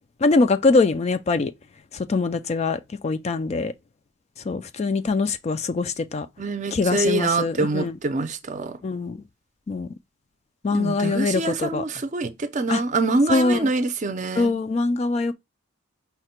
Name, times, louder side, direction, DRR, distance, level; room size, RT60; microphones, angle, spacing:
voice 1, 0.2-1.5 2.1-3.7 4.5-6.3 6.7-8.0 8.8-9.2 9.7-9.9 10.6-11.8 12.7-12.8 13.3-13.7 14.4-15.3, left 3 dB, 35° left, 0.3 m, -23 dB
voice 2, 6.4-8.8 10.7-14.5, right 3 dB, 40° right, 0.5 m, -25 dB
5.6 x 2.2 x 4.3 m
head